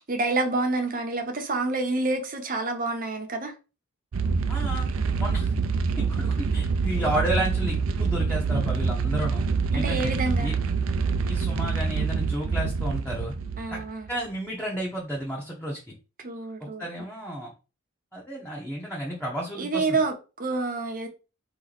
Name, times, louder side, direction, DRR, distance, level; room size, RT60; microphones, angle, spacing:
voice 1, 0.0-3.5 9.7-10.5 13.6-14.1 16.2-16.9 19.6-21.1, right 3 dB, 40° right, 0.9 m, -28 dB
sound 1, 4.1-14.2, right 5 dB, 75° right, 0.5 m, -26 dB
voice 2, 4.5-4.9 5.2-5.5 6.0-9.4 9.7-10.1 10.4-10.5 11.2-13.3 13.7-13.8 14.1-15.8 16.6-17.5 18.1-20.0, right 1 dB, 5° left, 1.0 m, -32 dB
4.0 x 3.1 x 4.0 m
head